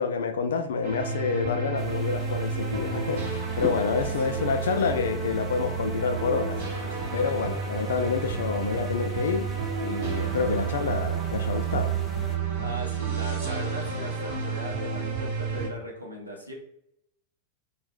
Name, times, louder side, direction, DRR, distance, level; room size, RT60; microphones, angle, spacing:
voice 1, 0.0-9.5 9.8-11.9, left 5 dB, 65° left, 0.3 m, -28 dB
sound 1, 0.8-15.7, right 5 dB, 60° right, 0.9 m, -30 dB
sound 2, 1.7-12.4, left 3 dB, 15° left, 0.5 m, -42 dB
voice 2, 4.2-4.6 12.6-16.5, right 1 dB, 90° right, 0.7 m, -39 dB
2.4 x 2.1 x 3.3 m
figure-of-eight pair, 90°, 0 cm